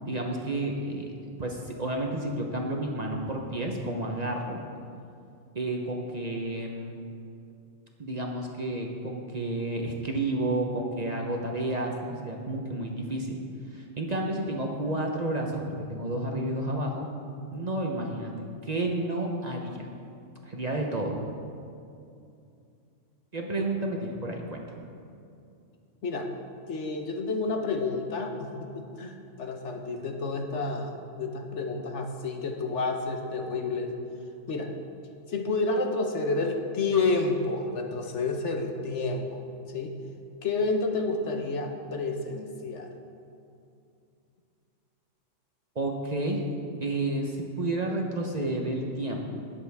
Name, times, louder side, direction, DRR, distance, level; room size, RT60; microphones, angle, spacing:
voice 1, 0.1-1.1 1.4-4.6 5.5-7.0 8.0-13.4 13.7-17.1 17.5-18.3 18.6-19.9 20.4-21.2 23.3-24.6 45.7-46.4 46.8-49.4, right 1 dB, 35° right, 0 dB, 0.9 m, -31 dB
voice 2, 26.7-33.9 34.5-34.7 35.3-39.4 39.7-39.9 40.4-42.9, left 3 dB, 60° left, 4 dB, 1.2 m, -30 dB
19.5 x 7.2 x 3.5 m, 2.5 s
omnidirectional pair, 1.4 m